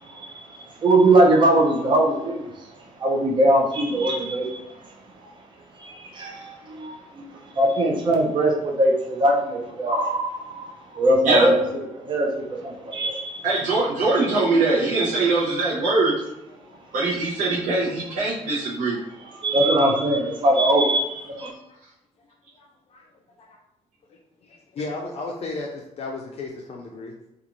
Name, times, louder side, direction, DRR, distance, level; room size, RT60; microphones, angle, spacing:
voice 1, 0.0-2.7 3.0-4.6 5.2-5.3 5.8-11.5 12.0-13.5 19.2-21.5, right 1 dB, 35° right, -1 dB, 0.5 m, -21 dB
voice 2, 13.4-16.1 16.9-19.0, right 2 dB, 75° right, -7 dB, 0.7 m, -21 dB
voice 3, 22.6-23.0 24.5-25.7 26.0-27.1, left 3 dB, 50° left, 0 dB, 0.4 m, -34 dB
2.5 x 2.4 x 2.9 m, 0.91 s
cardioid pair, 120°, 13 cm